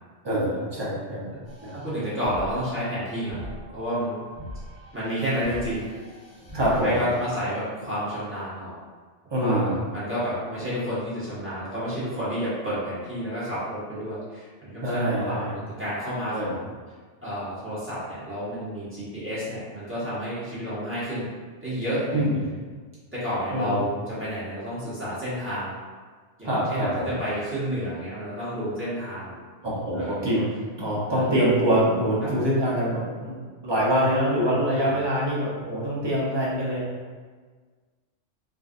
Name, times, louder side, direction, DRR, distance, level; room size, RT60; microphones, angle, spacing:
voice 1, 0.2-1.3 1.6-1.7 6.5-7.0 9.3-9.8 14.8-15.6 16.3-16.6 22.1-22.4 23.5-23.8 26.4-27.1 29.6-30.5 30.8-36.8, equal, 30° right, -7 dB, 0.6 m, -24 dB
sound 1, 1.5-7.3, equal, 35° left, 1.0 m, -42 dB
voice 2, 1.7-4.2 4.9-5.9 6.7-8.8 9.3-16.7 17.2-21.3 21.6-22.2 23.1-25.7 26.4-29.4 29.9-30.3 31.1-31.2 32.2-32.4 34.6-35.0, equal, 10° right, -12 dB, 1.1 m, -30 dB
3.6 x 2.5 x 2.5 m, 1.5 s
omnidirectional pair, 1.3 m